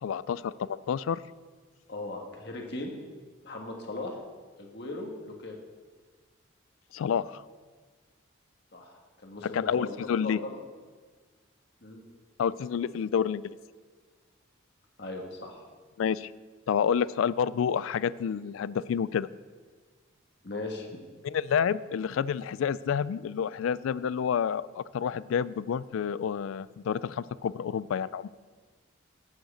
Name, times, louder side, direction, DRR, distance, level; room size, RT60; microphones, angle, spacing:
voice 1, 0.0-1.2 6.9-7.4 9.5-10.4 12.4-13.4 16.0-16.3 16.7-19.3 21.2-28.3, left 7 dB, 80° left, 19 dB, 0.3 m, -29 dB
voice 2, 1.9-2.9 3.4-4.2 4.6-5.6 8.7-10.6 11.8-12.0 15.0-15.6 20.4-21.0, left 2 dB, 55° left, 1 dB, 1.5 m, -38 dB
7.9 x 6.4 x 8.2 m, 1.5 s
head